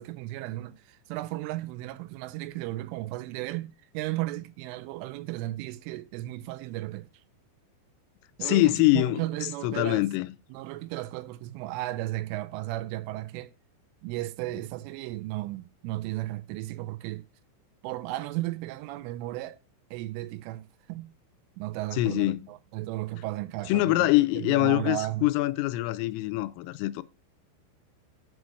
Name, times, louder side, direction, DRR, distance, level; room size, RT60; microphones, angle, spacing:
voice 1, 0.0-7.1 8.4-10.0 10.5-13.5 14.0-17.2 17.8-19.6 19.9-21.1 21.6-24.1 24.4-25.3, right 17 dB, 85° right, 3.0 m, -35 dB
voice 2, 8.4-9.2 9.6-10.4 21.9-22.5 23.7-27.0, left 18 dB, 85° left, 3.2 m, -24 dB
7.6 x 5.2 x 6.2 m
omnidirectional pair, 5.7 m